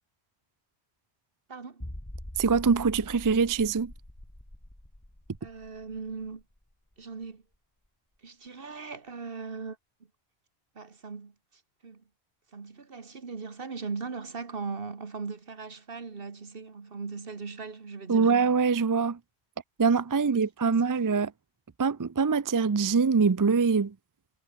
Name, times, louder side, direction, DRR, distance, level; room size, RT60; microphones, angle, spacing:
voice 1, 1.5-1.9 5.4-6.4 7.0-7.4 8.2-9.8 10.8-11.3 11.8-12.0 12.5-18.3 20.1-20.7, right 4 dB, 60° right, 1.8 m, -39 dB
sound 1, 1.8-7.2 7.5-7.6 8.2-8.3, left 1 dB, 10° left, 2.4 m, -44 dB
voice 2, 2.4-3.9 18.1-19.2 19.8-21.3 21.8-23.9, right 5 dB, 35° right, 0.3 m, -24 dB
omnidirectional pair, 1.1 m